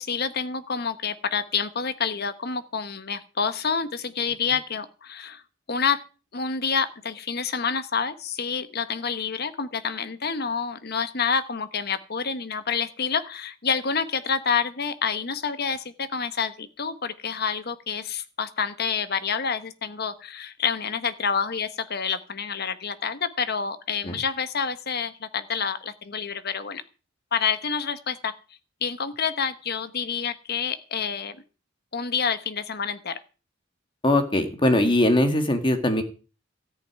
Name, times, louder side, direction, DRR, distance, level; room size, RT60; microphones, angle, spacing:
voice 1, 0.0-5.4 5.7-6.0 6.3-26.8 27.3-28.3 28.8-31.4 31.9-33.2, left 6 dB, 55° left, 12 dB, 1.2 m, -28 dB
voice 2, 34.0-36.0, left 1 dB, 25° left, 7 dB, 1.9 m, -21 dB
13.5 x 5.9 x 9.4 m, 0.35 s
head